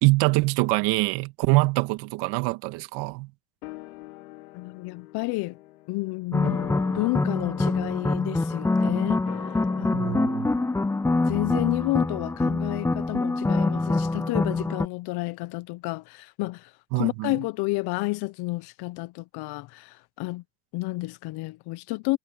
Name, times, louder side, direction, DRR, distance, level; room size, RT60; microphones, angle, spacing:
voice 1, 0.0-3.3 9.9-10.5 16.9-17.4, right 24 dB, 75° right, 2.2 m, -24 dB
sound 1, 3.6-14.2 14.5-14.6, left 19 dB, 85° left, 3.6 m, -45 dB
voice 2, 4.5-5.6 5.9-9.2 9.8-10.2 11.3-20.4 20.7-22.2, left 22 dB, 70° left, 1.1 m, -30 dB
sound 2, 6.3-14.9, left 2 dB, 5° left, 0.4 m, -25 dB
hypercardioid pair, 65°, 41 cm